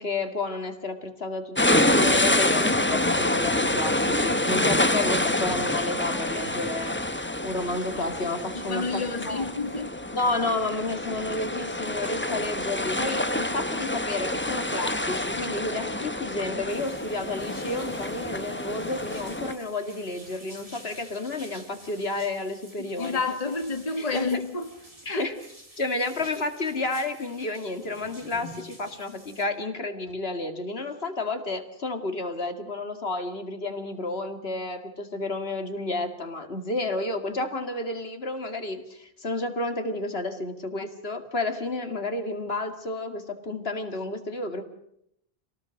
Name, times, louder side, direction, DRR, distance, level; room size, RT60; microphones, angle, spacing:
voice 1, 0.0-7.0 7.4-9.4 10.1-23.2 24.0-24.4 25.1-25.4 25.8-44.6, left 2 dB, 70° left, 2.4 m, -31 dB
sound 1, 1.6-19.5, left 1 dB, 10° left, 1.0 m, -27 dB
voice 2, 8.5-9.9 22.8-24.7 25.1-25.3, left 4 dB, 35° left, 1.6 m, -30 dB
sound 2, 16.7-29.5, equal, 35° right, 3.6 m, -49 dB
27.0 x 18.5 x 6.3 m
omnidirectional pair, 1.1 m